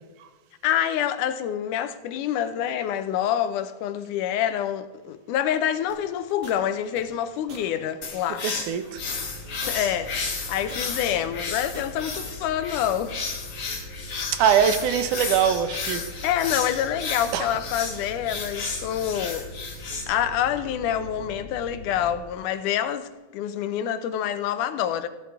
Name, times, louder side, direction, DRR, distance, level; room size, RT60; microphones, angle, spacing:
voice 1, 0.6-8.5 9.7-13.2 16.2-19.5 20.1-25.1, left 10 dB, 90° left, 2.2 m, -27 dB
sound 1, 5.9-12.2, right 3 dB, 50° right, 2.8 m, -46 dB
sound 2, 8.0-20.0, left 4 dB, 60° left, 3.3 m, -33 dB
voice 2, 8.4-9.0 14.3-16.3 17.3-17.5, right 8 dB, 80° right, 2.4 m, -23 dB
sound 3, 8.9-22.2, left 1 dB, 65° right, 4.9 m, -42 dB
15.0 x 11.5 x 3.6 m
omnidirectional pair, 3.6 m